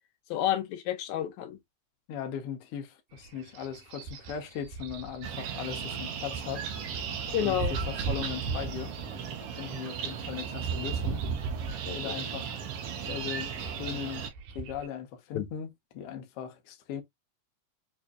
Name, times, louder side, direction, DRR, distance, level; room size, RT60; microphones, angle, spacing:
voice 1, 0.3-1.6 7.3-7.7 11.9-12.1 15.3-15.5, left 11 dB, 85° left, 2.0 m, -30 dB
voice 2, 2.1-6.7 7.3-9.0 9.6-11.2 11.8-12.6 13.0-14.3 14.5-17.0, left 8 dB, 65° left, 1.5 m, -38 dB
sound 1, 3.1-14.9, right 5 dB, 90° right, 2.3 m, -38 dB
sound 2, 5.2-14.3, right 7 dB, 70° right, 1.5 m, -37 dB
5.0 x 2.6 x 2.2 m
omnidirectional pair, 3.3 m